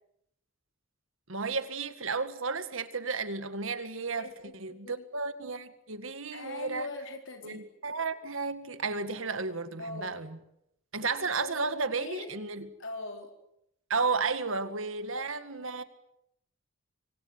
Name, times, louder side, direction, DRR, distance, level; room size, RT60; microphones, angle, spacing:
voice 1, 1.3-4.3 4.6-6.9 7.4-10.4 10.9-12.7 13.9-15.8, right 4 dB, 75° right, 2.0 m, -33 dB
voice 2, 4.2-5.0 6.3-7.6 9.8-10.2 11.0-11.1 11.4-12.3 12.8-13.3 15.2-15.3, left 2 dB, 65° left, 4.6 m, -42 dB
25.5 x 25.5 x 8.2 m
head